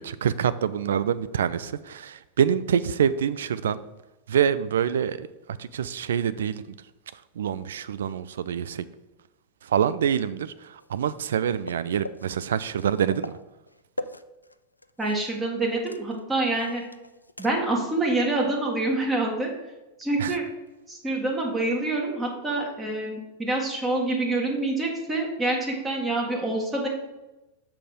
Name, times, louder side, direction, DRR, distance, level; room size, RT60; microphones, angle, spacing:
voice 1, 0.0-3.8 4.3-5.3 5.6-6.6 7.1-8.8 9.6-13.3 20.2-20.3, right 8 dB, 65° right, 15 dB, 0.3 m, -26 dB
sound 1, 10.8-15.4 15.7-17.8 18.2-18.3 20.8-20.9, left 1 dB, 85° left, 0.3 m, -42 dB
voice 2, 15.0-16.8 17.4-19.7 20.0-20.5 20.9-26.9, right 2 dB, 10° right, -1 dB, 1.7 m, -26 dB
6.7 x 5.7 x 5.0 m, 1.0 s
figure-of-eight pair, 90°, 0 cm